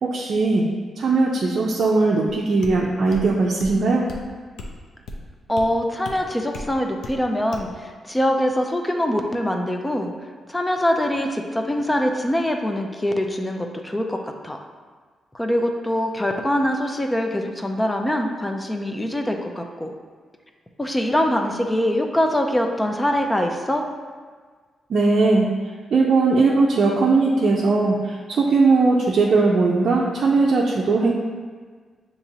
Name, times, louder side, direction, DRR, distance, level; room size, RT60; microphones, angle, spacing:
voice 1, 0.0-4.1 24.9-25.5 25.9-31.1, right 3 dB, 60° right, -3 dB, 0.5 m, -19 dB
sound 1, 2.6-2.8 3.1-3.3 3.6-3.8 4.1-4.3 4.6-4.8 5.1-5.2 5.6-5.7 6.1-6.2 6.5-6.7 7.0-7.2 7.5-7.7, left 2 dB, 85° left, 0.5 m, -35 dB
voice 2, 5.5-10.1 10.5-14.6 15.3-19.9 20.8-23.8, left 1 dB, 15° left, 3 dB, 0.4 m, -23 dB
6.7 x 2.9 x 2.7 m, 1.5 s
cardioid pair, 95°, 0 cm